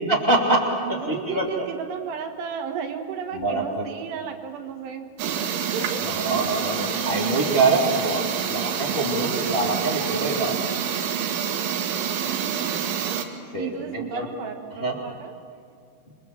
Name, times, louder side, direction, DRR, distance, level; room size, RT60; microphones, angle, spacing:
voice 1, 0.1-0.6 1.1-1.7 3.3-3.9 6.0-8.2 8.5-10.7 13.5-14.3 14.8-15.0, right 2 dB, 15° left, -2 dB, 2.2 m, -24 dB
voice 2, 0.9-5.4 5.7-6.2 12.2-13.0 13.6-15.3, right 7 dB, 70° right, 5 dB, 3.5 m, -34 dB
sound 1, 5.2-13.3, right 8 dB, 90° right, 4.0 m, -27 dB
28.0 x 23.5 x 7.6 m, 2.3 s
omnidirectional pair, 5.2 m